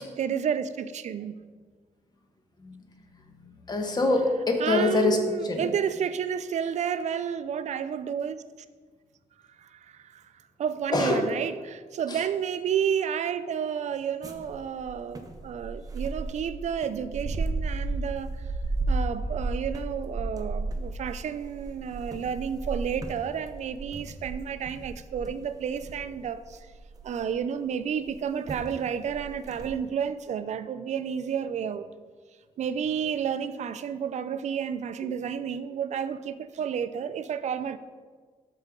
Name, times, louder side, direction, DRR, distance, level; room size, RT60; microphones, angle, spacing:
voice 1, 0.0-1.5 4.6-8.4 9.6-10.2 10.6-18.4 18.9-26.7 27.0-31.9 32.6-37.8, right 8 dB, 65° right, 0.4 m, -31 dB
voice 2, 3.4-5.2 5.4-5.7 10.9-11.3 12.1-12.2, left 3 dB, 30° left, 1.1 m, -25 dB
sound 1, 14.2-27.4 28.1-28.2 28.5-28.7 29.1-29.7, right 2 dB, 30° right, 0.7 m, -34 dB
13.0 x 5.0 x 3.7 m
wide cardioid pair, 150°, 13 cm